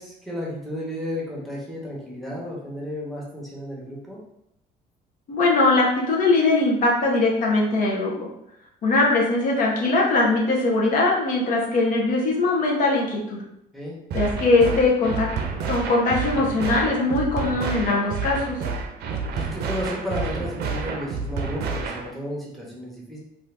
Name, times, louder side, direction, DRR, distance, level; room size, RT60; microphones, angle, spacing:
voice 1, 0.0-4.2 13.7-14.0 19.3-23.2, equal, ahead, -5 dB, 0.9 m, -33 dB
voice 2, 5.3-8.3 8.8-13.4 14.1-15.3 15.7-18.6, left 2 dB, 55° left, -2 dB, 0.7 m, -21 dB
sound 1, 14.1-22.1, right 4 dB, 70° right, 0.5 m, -29 dB
2.7 x 2.4 x 3.3 m, 0.81 s
cardioid pair, 110°, 17 cm